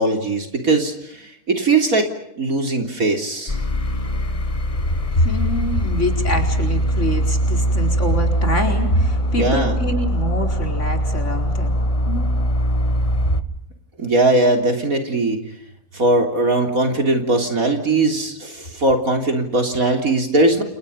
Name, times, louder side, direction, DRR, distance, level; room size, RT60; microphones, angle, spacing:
voice 1, 0.0-2.1 2.4-3.6 9.4-9.8 14.0-15.4 15.9-20.6, right 2 dB, 70° right, 4 dB, 4.0 m, -19 dB
sound 1, 3.5-13.4, equal, 25° left, 1.3 m, -22 dB
voice 2, 5.1-11.8 12.1-12.3, left 1 dB, 55° left, 4 dB, 5.1 m, -24 dB
30.0 x 29.5 x 5.6 m, 0.78 s
omnidirectional pair, 1.5 m